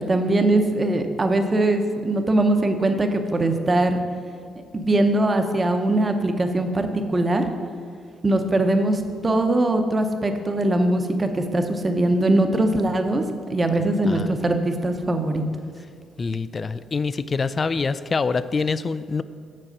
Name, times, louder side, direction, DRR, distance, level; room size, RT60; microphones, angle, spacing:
voice 1, 0.0-4.0 4.7-7.5 8.2-13.2 13.5-15.4, right 1 dB, 25° right, 6 dB, 0.8 m, -21 dB
voice 2, 16.2-19.2, left 4 dB, 35° left, 15 dB, 0.3 m, -25 dB
7.5 x 4.7 x 6.5 m, 2.1 s
cardioid pair, 90°, 0 cm